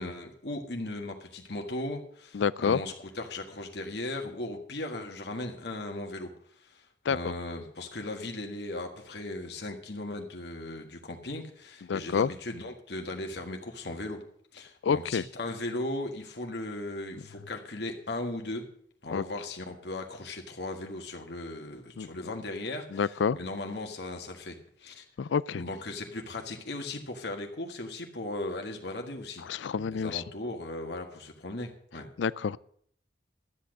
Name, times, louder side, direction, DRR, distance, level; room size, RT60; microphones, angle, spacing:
voice 1, 0.0-6.3 6.6-14.2 14.5-18.6 19.0-25.0 25.5-29.4 29.7-32.1, left 2 dB, 65° left, 1.7 m, -37 dB
voice 2, 2.3-2.8 7.1-7.2 11.9-12.3 14.8-15.2 19.1-19.2 22.0-22.3 22.9-23.4 25.2-25.6 29.4-30.2 32.2-32.6, left 6 dB, 80° left, 0.4 m, -28 dB
12.5 x 8.5 x 6.5 m
head